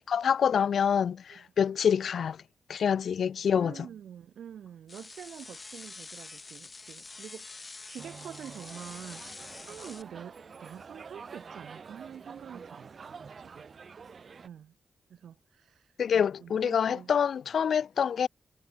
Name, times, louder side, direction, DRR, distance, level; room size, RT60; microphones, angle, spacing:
voice 1, 0.0-2.4 2.7-3.9 16.0-18.3, left 7 dB, 75° left, 0.6 m, -26 dB
voice 2, 3.6-13.7 14.4-14.7 15.1-17.1, right 9 dB, 90° right, 7.6 m, -47 dB
sound 1, 4.9-10.0, left 3 dB, 35° left, 7.7 m, -46 dB
sound 2, 8.0-14.5, right 5 dB, 55° right, 1.6 m, -47 dB
cardioid pair, 90°, 0 cm